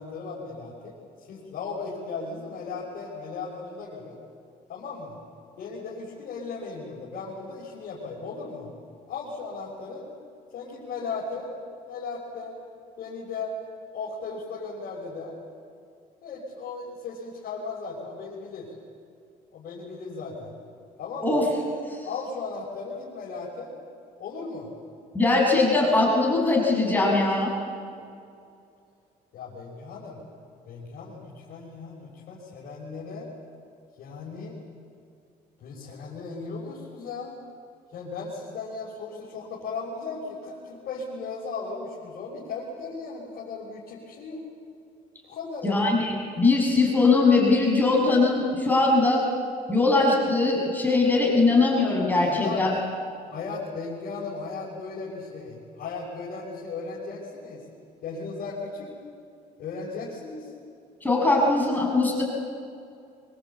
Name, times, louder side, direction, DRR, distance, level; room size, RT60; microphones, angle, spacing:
voice 1, 0.0-4.2 4.7-5.2 5.6-8.7 9.1-10.1 10.5-11.5 11.8-12.6 13.0-13.5 13.9-15.4 16.2-18.7 19.5-20.6 21.0-21.4 22.0-23.7 24.2-24.7 29.3-30.2 30.7-33.3 34.0-34.6 35.6-37.4 37.9-44.4 45.2-45.8 52.2-52.6 53.3-57.6 58.0-58.9 59.6-60.5, left 4 dB, 60° left, -6 dB, 6.2 m, -36 dB
voice 2, 25.1-27.5 45.6-49.2 49.7-52.7 61.0-62.2, left 3 dB, 10° left, -2 dB, 6.8 m, -21 dB
25.5 x 23.5 x 8.7 m, 2.4 s
cardioid pair, 110°, 17 cm